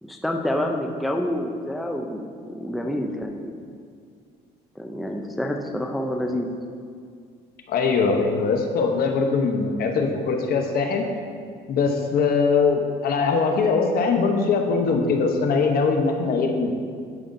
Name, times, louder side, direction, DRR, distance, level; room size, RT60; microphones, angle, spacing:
voice 1, 0.0-3.5 4.8-6.5, left 1 dB, ahead, 3 dB, 0.4 m, -28 dB
voice 2, 7.7-11.0 11.7-16.7, left 4 dB, 60° left, 3 dB, 0.8 m, -21 dB
11.0 x 5.1 x 2.6 m, 2.2 s
cardioid pair, 110°, 17 cm